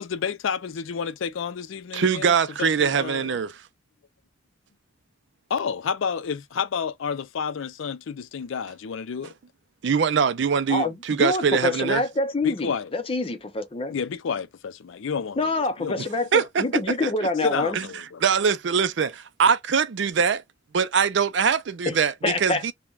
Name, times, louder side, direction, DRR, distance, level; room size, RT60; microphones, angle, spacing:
voice 1, 0.0-2.3 2.6-3.4 5.5-9.3 12.4-12.9 13.9-15.5 15.8-16.1 17.4-18.2, left 6 dB, 80° left, 0.4 m, -30 dB
voice 2, 1.9-3.6 9.8-12.0 16.3-16.6 17.0-17.1 17.7-17.9 18.2-20.4 20.7-22.7, right 6 dB, 65° right, 0.4 m, -22 dB
voice 3, 10.7-13.9 15.4-17.8 21.9-22.0 22.2-22.7, left 2 dB, 30° left, 0.5 m, -26 dB
3.2 x 2.2 x 2.3 m
head